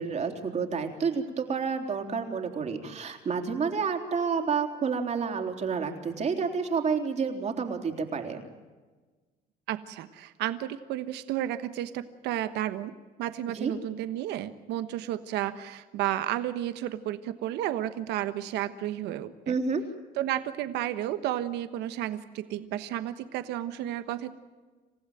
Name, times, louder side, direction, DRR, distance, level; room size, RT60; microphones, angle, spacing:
voice 1, 0.0-8.4 13.5-13.7 19.5-19.8, right 5 dB, 40° right, 3 dB, 3.8 m, -29 dB
voice 2, 9.7-12.9 13.2-19.5 20.2-24.3, right 12 dB, 85° right, 11 dB, 1.2 m, -32 dB
28.0 x 15.5 x 9.2 m, 1.3 s
cardioid pair, 110°, 17 cm